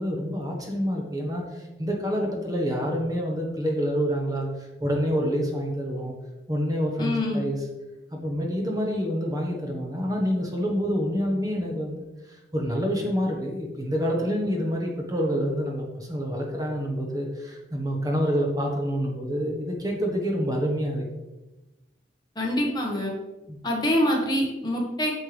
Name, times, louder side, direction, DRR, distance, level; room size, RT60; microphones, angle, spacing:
voice 1, 0.0-6.1 6.5-7.6 8.1-21.0 23.5-23.6, equal, 20° right, 0 dB, 1.1 m, -27 dB
voice 2, 7.0-7.5 22.3-23.1 23.6-25.1, left 1 dB, 25° left, -1 dB, 1.5 m, -25 dB
8.9 x 6.5 x 3.3 m, 1.0 s
head